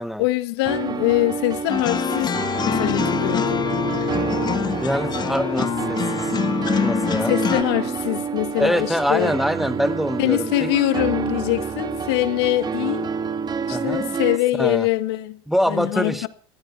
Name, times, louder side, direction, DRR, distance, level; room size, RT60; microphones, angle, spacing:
voice 1, 0.2-2.4 2.7-3.6 7.2-9.3 10.2-13.0 13.7-15.4 15.7-16.3, left 18 dB, 80° left, 1.7 m, -23 dB
sound 1, 0.6-14.4, right 6 dB, 35° right, 2.0 m, -28 dB
sound 2, 1.7-7.6, left 7 dB, 35° left, 1.3 m, -25 dB
Bowed string instrument, 2.6-7.7, left 5 dB, 15° left, 5.4 m, -32 dB
voice 2, 4.8-6.0 6.8-7.3 8.6-10.7 13.7-14.1 14.6-14.9 15.5-16.3, equal, ahead, 1.1 m, -24 dB
16.0 x 14.0 x 5.9 m
supercardioid pair, 90°, 13 cm